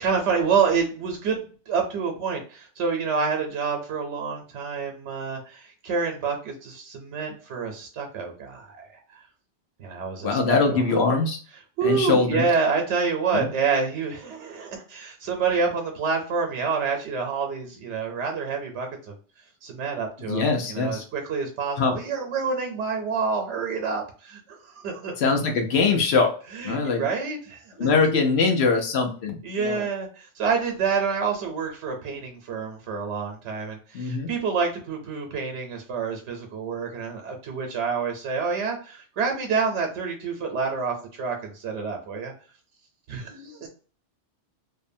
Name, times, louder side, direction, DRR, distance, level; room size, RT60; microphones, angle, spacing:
voice 1, 0.0-9.2 9.8-10.8 11.8-19.1 19.6-25.2 26.5-27.9 29.4-42.3 43.1-43.7, right 5 dB, 90° right, 3 dB, 1.0 m, -28 dB
voice 2, 10.2-11.4 11.8-12.4 13.3-13.5 20.2-21.0 21.8-22.0 25.2-26.4 26.6-27.0 27.8-29.9 33.9-34.3, left 4 dB, 70° left, 3 dB, 0.9 m, -22 dB
2.7 x 2.1 x 2.5 m, 0.39 s
omnidirectional pair, 1.2 m